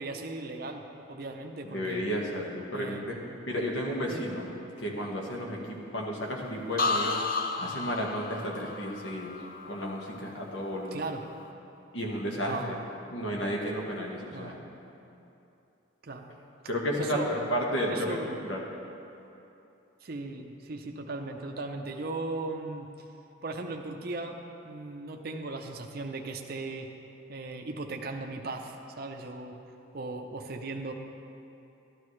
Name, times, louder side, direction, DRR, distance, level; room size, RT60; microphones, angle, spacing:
voice 1, 0.0-2.0 2.7-3.4 4.1-4.3 10.9-11.2 12.4-12.8 13.3-13.5 14.3-14.6 16.0-16.3 17.0-17.3 17.9-18.3 20.0-22.9 23.4-24.4 24.6-26.9 27.3-29.6 29.9-30.9, right 2 dB, 50° right, 3 dB, 0.6 m, -37 dB
voice 2, 1.6-3.2 3.5-4.5 4.8-7.2 7.6-9.3 9.6-11.0 11.9-12.8 13.1-14.6 16.7-18.6, equal, 70° left, -1 dB, 1.5 m, -32 dB
sound 1, 6.8-10.6 11.0-11.4, left 3 dB, 45° left, 0.6 m, -33 dB
13.0 x 12.0 x 3.2 m, 2.9 s
head